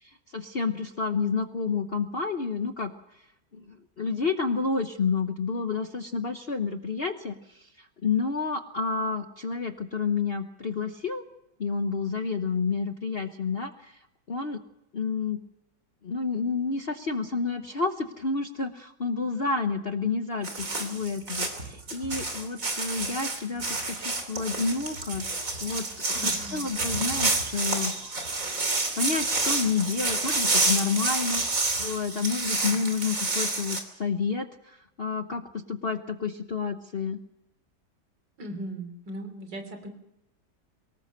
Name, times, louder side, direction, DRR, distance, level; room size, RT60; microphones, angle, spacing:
voice 1, 0.0-2.9 3.5-11.2 11.6-14.0 14.3-14.6 14.9-15.4 16.0-25.3 25.6-27.9 29.0-37.2, left 4 dB, 40° left, 7 dB, 1.0 m, -30 dB
sound 1, 20.4-33.8, right 3 dB, 50° right, 3.5 m, -29 dB
voice 2, 26.1-26.6 38.4-39.9, right 1 dB, 85° right, 7 dB, 3.9 m, -38 dB
24.0 x 19.0 x 6.6 m, 0.86 s
omnidirectional pair, 1.9 m